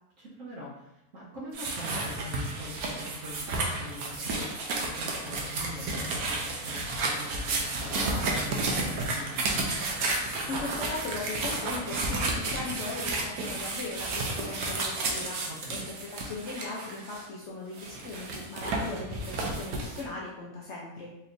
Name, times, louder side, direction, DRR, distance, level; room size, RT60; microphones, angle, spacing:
voice 1, 0.2-9.6 15.5-15.8, equal, 65° right, -6 dB, 1.2 m, -43 dB
sound 1, 1.5-17.2 17.8-20.0, right 2 dB, 85° right, 1.2 m, -32 dB
voice 2, 10.5-21.1, left 3 dB, 60° left, -4 dB, 0.8 m, -39 dB
4.2 x 2.9 x 2.5 m, 0.88 s
omnidirectional pair, 1.6 m